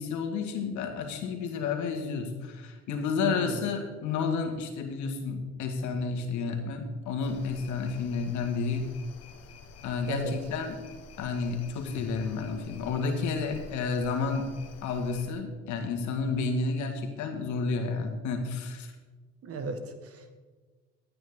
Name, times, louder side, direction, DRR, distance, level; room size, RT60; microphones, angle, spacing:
voice 1, 0.0-8.9 9.8-10.7 11.2-14.5 14.8-18.9, left 4 dB, 70° left, 5 dB, 1.8 m, -31 dB
voice 2, 3.3-3.6 10.1-10.3 19.4-20.4, right 4 dB, 50° right, 8 dB, 1.6 m, -36 dB
sound 1, 7.2-15.3, left 4 dB, 55° left, 1.3 m, -49 dB
14.0 x 9.0 x 3.7 m, 1.4 s
supercardioid pair, 90°, 30 cm